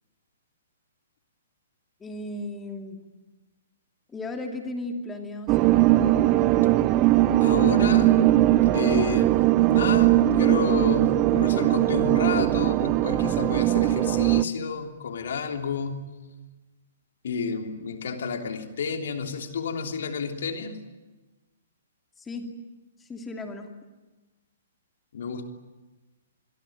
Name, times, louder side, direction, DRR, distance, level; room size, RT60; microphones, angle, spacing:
voice 1, 2.0-3.0 4.1-5.7 22.2-22.5 23.0-23.7, left 2 dB, 10° left, 3 dB, 2.7 m, -35 dB
sound 1, 5.5-14.4, right 15 dB, 30° right, 0.8 m, -20 dB
voice 2, 7.4-8.2 8.7-9.4 9.7-16.1 17.2-20.8 25.1-25.5, left 5 dB, 60° left, 4 dB, 3.2 m, -30 dB
27.5 x 22.5 x 8.9 m, 1.1 s
figure-of-eight pair, 120°, 0 cm